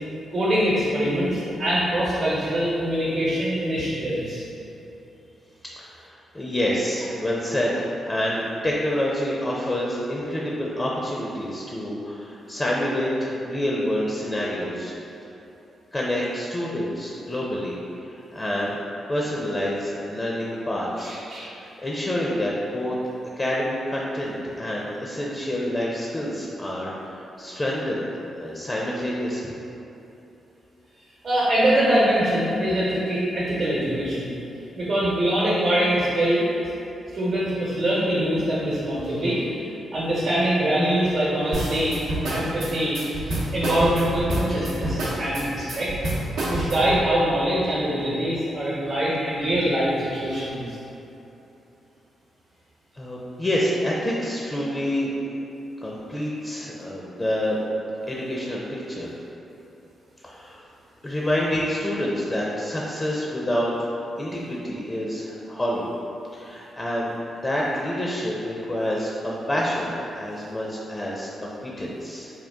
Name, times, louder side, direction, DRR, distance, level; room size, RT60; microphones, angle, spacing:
voice 1, 0.3-4.4 21.0-21.5 31.2-34.3 34.8-36.4 37.1-41.9 42.3-45.9 46.5-50.8, right 1 dB, 60° right, -8 dB, 0.9 m, -23 dB
voice 2, 5.8-14.9 15.9-18.8 19.1-21.2 21.6-23.0 23.4-28.1 28.3-29.5 52.9-55.1 55.8-57.6 58.1-59.1 60.2-60.6 61.0-63.7 64.2-65.8 66.3-67.1 67.4-72.3, left 1 dB, 30° left, -4 dB, 0.5 m, -27 dB
sound 1, 41.5-47.0, right 1 dB, 80° right, 0.7 m, -27 dB
3.8 x 2.3 x 3.4 m, 3.0 s
supercardioid pair, 50°, 0 cm